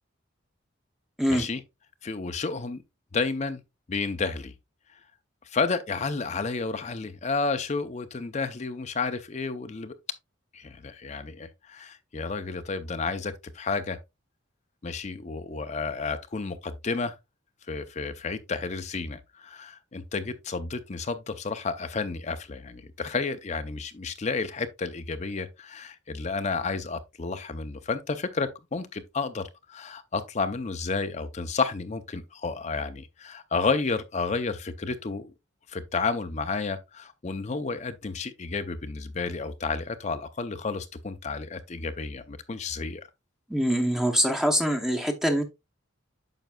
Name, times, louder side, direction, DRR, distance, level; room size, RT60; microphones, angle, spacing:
voice 1, 1.3-1.6 2.0-2.8 3.1-3.6 3.9-4.5 5.5-9.9 10.5-14.0 14.8-17.1 17.7-35.3 35.7-43.1, left 4 dB, 35° left, 0.5 m, -31 dB
voice 2, 43.5-45.4, equal, ahead, 0.7 m, -24 dB
9.0 x 6.3 x 2.3 m
head